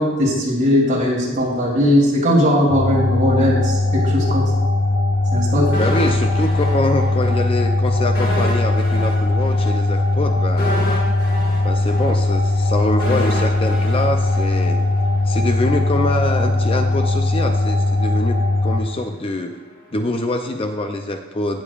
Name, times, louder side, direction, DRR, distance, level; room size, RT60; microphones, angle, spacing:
voice 1, 0.0-4.4 5.3-5.6, equal, 40° right, -4 dB, 2.9 m, -18 dB
sound 1, 2.7-18.8, left 2 dB, 70° left, 1.1 m, -19 dB
sound 2, 5.7-7.4 7.6-7.8 8.1-15.2 15.5-15.7, equal, 50° left, 1.6 m, -30 dB
voice 2, 5.8-10.9 11.6-14.8 15.2-19.5 19.9-21.6, left 1 dB, 30° left, 5 dB, 0.5 m, -24 dB
16.5 x 7.1 x 2.5 m, 1.2 s
head